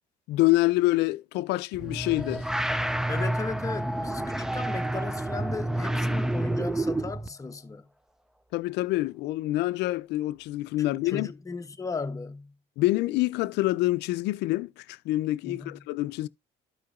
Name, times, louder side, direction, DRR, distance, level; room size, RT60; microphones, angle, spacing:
voice 1, 0.3-2.4 8.5-11.3 12.8-16.3, left 18 dB, 85° left, 0.4 m, -26 dB
sound 1, 1.7-7.3, right 1 dB, 5° right, 0.4 m, -29 dB
voice 2, 3.1-7.9 10.8-12.5 15.4-15.8, left 4 dB, 20° left, 0.8 m, -36 dB
13.5 x 4.7 x 2.4 m
cardioid pair, 110°, 17 cm